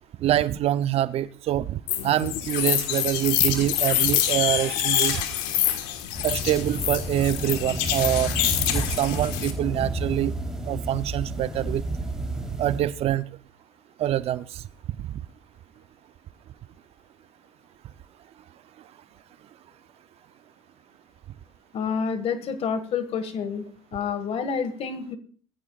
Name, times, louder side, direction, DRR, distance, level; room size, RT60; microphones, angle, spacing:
voice 1, 0.2-5.2 6.2-8.3 8.7-10.3 10.7-11.8 12.6-13.3 14.0-14.6 15.0-15.2, right 12 dB, 60° right, 14 dB, 0.6 m, -25 dB
sound 1, 1.9-9.5, left 12 dB, 85° left, 1.5 m, -26 dB
sound 2, 6.1-12.8, right 2 dB, 5° right, 3.5 m, -31 dB
voice 2, 21.7-23.7 23.9-25.2, left 6 dB, 55° left, 11 dB, 1.8 m, -28 dB
20.0 x 14.5 x 2.4 m, 0.43 s
supercardioid pair, 80°, 12 cm